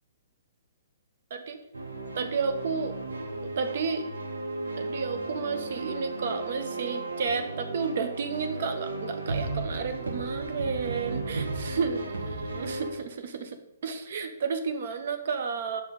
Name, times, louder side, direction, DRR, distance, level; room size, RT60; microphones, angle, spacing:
sound 1, 1.7-12.9, right 2 dB, 80° right, 0.9 m, -35 dB
voice 1, 2.1-2.9 3.6-4.1 4.8-15.8, right 5 dB, 55° right, 7 dB, 0.6 m, -32 dB
5.9 x 4.5 x 3.9 m, 0.86 s
figure-of-eight pair, 125°, 0 cm